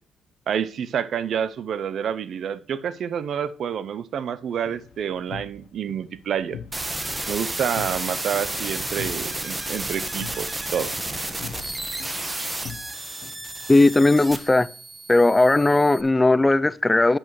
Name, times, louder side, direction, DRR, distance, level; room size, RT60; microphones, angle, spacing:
voice 1, 0.5-6.6 7.3-10.9, right 8 dB, 65° right, 0.5 m, -28 dB
sound 1, 4.5-13.9, left 8 dB, 85° left, 0.8 m, -44 dB
sound 2, 6.7-16.0, right 2 dB, 15° right, 1.1 m, -32 dB
voice 2, 13.7-14.7 15.1-17.2, left 2 dB, 15° left, 0.3 m, -17 dB
8.8 x 7.7 x 3.1 m
cardioid pair, 90°, 0 cm